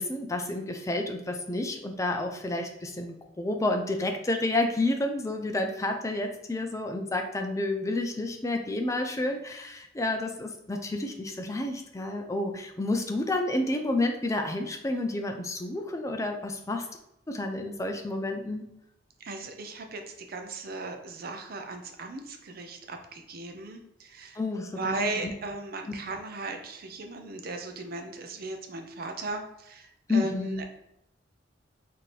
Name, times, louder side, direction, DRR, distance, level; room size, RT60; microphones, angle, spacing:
voice 1, 0.0-16.9 17.3-18.6 24.4-25.2 30.1-30.6, left 2 dB, 15° left, 4 dB, 0.4 m, -30 dB
voice 2, 19.2-24.4 24.8-30.8, right 2 dB, 50° right, 5 dB, 0.5 m, -37 dB
4.3 x 2.7 x 3.2 m, 0.81 s
head